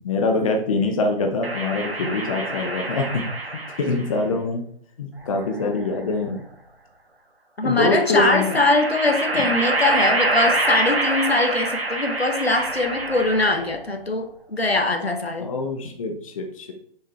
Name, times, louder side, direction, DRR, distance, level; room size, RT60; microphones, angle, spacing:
voice 1, 0.0-3.2 3.5-4.6 5.0-6.4 7.6-8.6 9.3-9.4 15.4-16.7, left 3 dB, 35° left, 4 dB, 0.9 m, -24 dB
sound 1, 1.4-4.1 5.2-6.2 7.8-13.8, right 2 dB, 75° right, 1.5 m, -26 dB
voice 2, 7.6-15.5, left 2 dB, 90° left, 5 dB, 1.2 m, -22 dB
6.2 x 5.6 x 3.5 m, 0.65 s
figure-of-eight pair, 135°, 30 cm